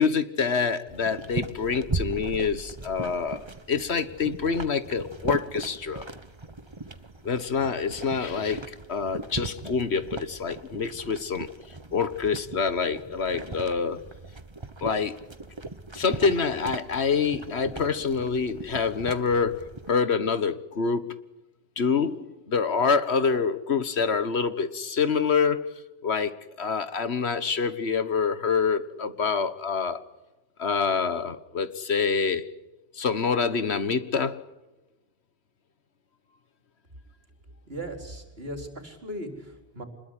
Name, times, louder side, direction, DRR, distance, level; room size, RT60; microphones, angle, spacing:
voice 1, 0.0-6.1 7.2-11.5 11.9-14.0 14.8-15.2 15.9-21.1 21.8-25.7 26.0-30.0 30.6-32.5 32.9-34.4, left 5 dB, 80° left, 1.7 m, -26 dB
sound 1, 0.9-19.9, right 2 dB, 25° right, 1.3 m, -38 dB
voice 2, 37.7-39.8, right 1 dB, 65° right, 4.4 m, -38 dB
26.0 x 21.5 x 10.0 m
omnidirectional pair, 1.1 m